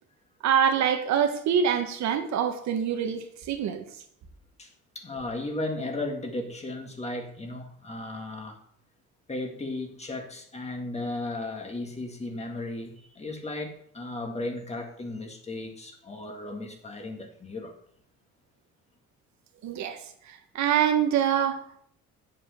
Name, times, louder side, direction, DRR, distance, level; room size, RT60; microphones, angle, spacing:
voice 1, 0.4-3.8 19.6-20.0 20.5-21.6, right 8 dB, 70° right, 6 dB, 1.4 m, -25 dB
voice 2, 4.6-8.6 9.3-17.7, left 2 dB, 20° left, 3 dB, 1.9 m, -35 dB
8.0 x 7.5 x 6.4 m, 0.66 s
cardioid pair, 130°, 30 cm